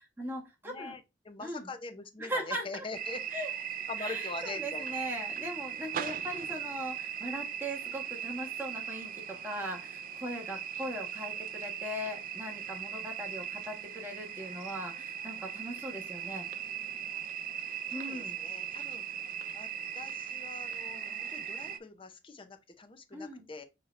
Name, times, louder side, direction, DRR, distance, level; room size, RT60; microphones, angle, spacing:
voice 1, 0.0-0.9 1.4-1.7 2.2-2.9 3.3-3.5 4.0-16.5 17.9-18.3 23.1-23.4, equal, 10° right, 1.4 m, -39 dB
voice 2, 0.6-3.2 3.5-4.9 17.9-19.2 19.5-19.7 19.9-23.6, left 3 dB, 30° left, 0.7 m, -43 dB
sound 1, 2.9-21.8, right 8 dB, 50° right, 0.4 m, -39 dB
6.5 x 2.8 x 2.5 m
head